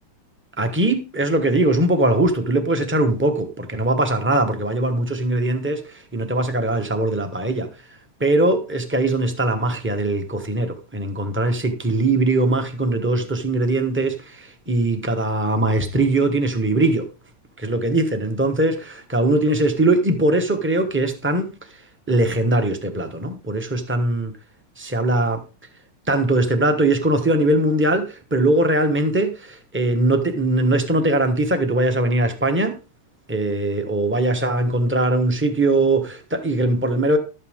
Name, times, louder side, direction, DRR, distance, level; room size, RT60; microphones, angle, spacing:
voice 1, 0.6-7.7 8.2-17.1 17.6-21.5 22.1-24.3 24.8-25.4 26.1-32.8 33.3-37.2, right 2 dB, 10° right, 0.9 m, -21 dB
12.0 x 8.4 x 3.6 m
omnidirectional pair, 2.4 m